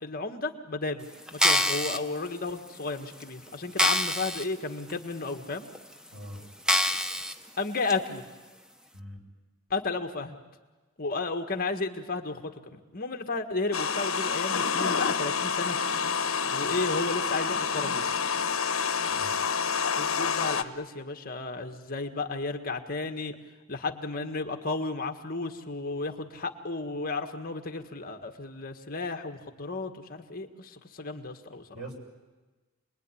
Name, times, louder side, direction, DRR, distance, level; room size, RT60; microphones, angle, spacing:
voice 1, 0.0-1.1 1.3-5.7 7.6-8.2 9.7-10.3 11.0-15.8 16.5-18.1 20.0-23.4 23.7-31.6, left 3 dB, 40° left, 5 dB, 1.7 m, -33 dB
sound 1, 1.3-2.0 2.7-2.8 3.2-3.3 3.8-4.5 4.9-5.0 5.7-5.8 6.7-7.3 7.9-8.0, left 1 dB, 5° right, 0.8 m, -25 dB
voice 2, 6.1-6.4 8.9-9.2 19.1-19.3 31.7-31.9, right 1 dB, 75° right, 2 dB, 6.5 m, -42 dB
sound 2, 13.7-20.6, left 6 dB, 65° left, 1.2 m, -28 dB
28.0 x 21.0 x 10.0 m, 1.2 s
head